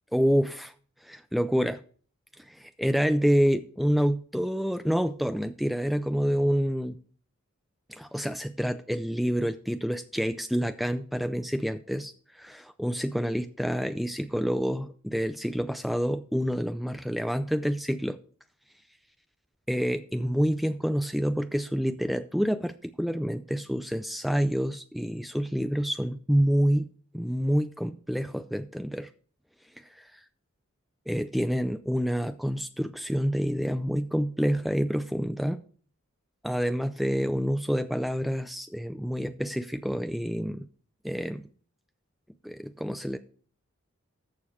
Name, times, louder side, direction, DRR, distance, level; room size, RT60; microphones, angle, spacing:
voice 1, 0.1-0.7 1.0-1.8 2.5-7.0 7.9-18.2 19.7-26.9 27.1-29.1 30.0-30.2 31.1-35.6 36.4-40.7 41.0-41.4 42.4-43.2, equal, ahead, 9 dB, 0.4 m, -28 dB
14.5 x 6.8 x 3.2 m, 0.43 s
head